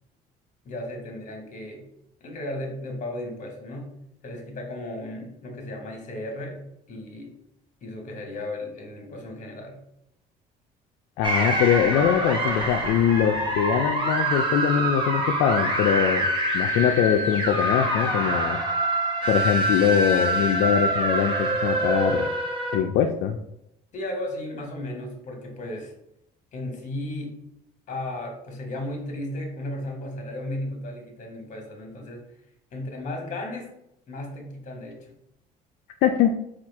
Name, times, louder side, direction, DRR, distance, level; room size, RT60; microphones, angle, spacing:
voice 1, 0.6-1.8 2.2-3.9 4.2-6.6 6.9-7.4 7.8-9.8 23.9-25.9 26.5-27.4 27.9-32.2 32.7-33.7 34.1-35.1, left 1 dB, 45° left, 2 dB, 1.3 m, -35 dB
voice 2, 11.2-16.3 16.5-18.6 19.3-22.3 22.7-23.4 36.0-36.4, left 8 dB, 80° left, 4 dB, 0.4 m, -22 dB
sound 1, 11.2-22.8, right 1 dB, 30° right, 1.1 m, -25 dB
4.3 x 2.4 x 4.5 m, 0.81 s
cardioid pair, 110°, 17 cm